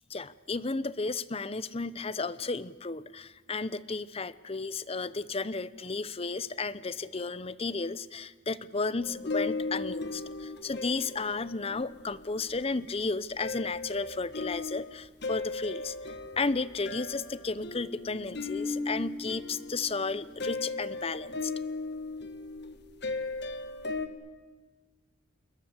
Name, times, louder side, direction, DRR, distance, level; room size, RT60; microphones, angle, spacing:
voice 1, 0.1-21.5, left 3 dB, 30° left, 16 dB, 0.8 m, -33 dB
sound 1, 9.0-13.0 13.4-24.1, left 3 dB, 60° left, 1.8 m, -37 dB
28.5 x 22.0 x 8.1 m, 1.4 s
head